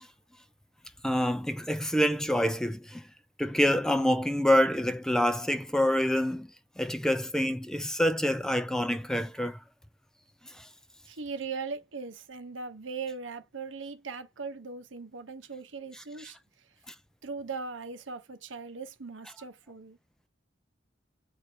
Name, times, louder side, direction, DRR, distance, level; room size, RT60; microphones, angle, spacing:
voice 1, 1.0-3.0 3.4-6.5 6.8-9.6 10.6-10.7, equal, 5° left, 0.5 m, -26 dB
voice 2, 11.1-16.4 17.2-20.0, right 4 dB, 85° right, 0.9 m, -39 dB
7.9 x 2.8 x 4.4 m
head